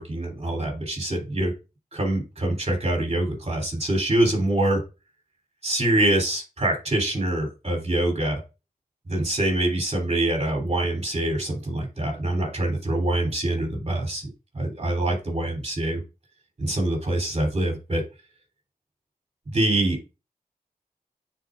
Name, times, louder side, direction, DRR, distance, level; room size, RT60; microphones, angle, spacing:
voice 1, 0.0-1.5 1.9-4.8 5.6-8.4 9.1-14.3 14.5-16.0 16.6-18.0 19.5-20.0, right 1 dB, 40° right, 1 dB, 3.3 m, -25 dB
9.3 x 4.4 x 2.6 m, 0.29 s
cardioid pair, 50°, 16 cm